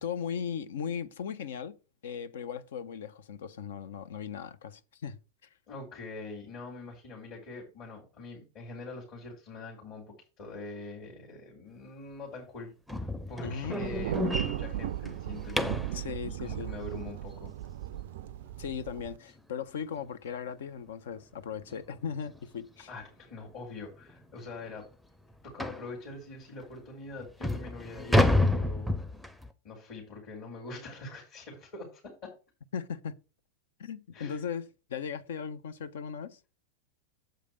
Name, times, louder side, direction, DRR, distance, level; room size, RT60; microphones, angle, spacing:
voice 1, 0.0-1.7 2.0-5.2 13.4-13.8 15.9-16.7 18.6-22.9 32.7-33.1 33.8-36.4, left 7 dB, 60° left, 0.6 m, -37 dB
voice 2, 5.7-16.0 16.4-17.5 22.9-24.9 25.4-28.9 29.6-32.3 34.1-34.4, left 3 dB, 40° left, 3.2 m, -44 dB
sound 1, 12.9-16.0 18.8-18.9 19.4-19.6 19.9-20.0 20.5-20.6 21.7-21.8 22.2-22.4 23.0-23.1 23.5-23.6 24.1-24.2 25.6-25.9 26.6-26.7 27.2-29.5, left 1 dB, ahead, 0.7 m, -29 dB
Thunder, 13.8-19.2, right 12 dB, 55° right, 0.3 m, -36 dB
7.8 x 5.0 x 4.6 m
figure-of-eight pair, 90°, 0 cm